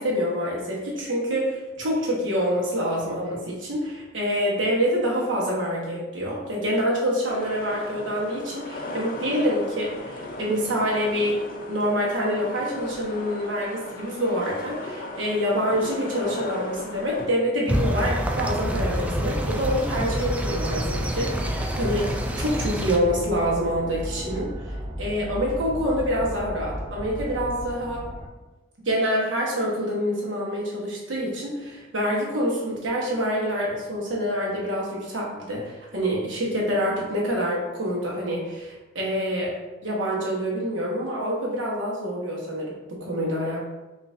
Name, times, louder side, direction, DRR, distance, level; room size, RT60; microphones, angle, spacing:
voice 1, 0.0-11.4 11.7-28.0 28.8-39.5 39.8-43.6, equal, 70° right, -4 dB, 1.2 m, -26 dB
sound 1, 7.3-17.3, left 2 dB, 45° left, 0.5 m, -37 dB
sound 2, 17.7-23.0, equal, 5° right, 0.3 m, -27 dB
sound 3, 18.6-28.3, equal, 25° right, 0.8 m, -34 dB
5.4 x 2.6 x 2.6 m, 1.1 s
head